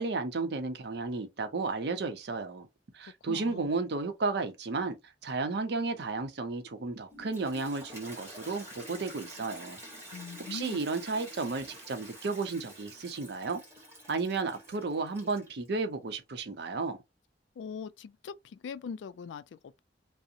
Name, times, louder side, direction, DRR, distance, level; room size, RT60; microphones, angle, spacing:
voice 1, 0.0-2.7 2.9-4.9 5.2-9.8 10.5-13.6 14.1-17.0, right 3 dB, 65° right, 0.6 m, -33 dB
voice 2, 3.3-3.7 10.1-10.8 17.6-19.8, left 6 dB, 90° left, 0.3 m, -41 dB
Toilet flush, 7.1-15.7, equal, 15° right, 1.0 m, -48 dB
2.7 x 2.0 x 2.4 m
head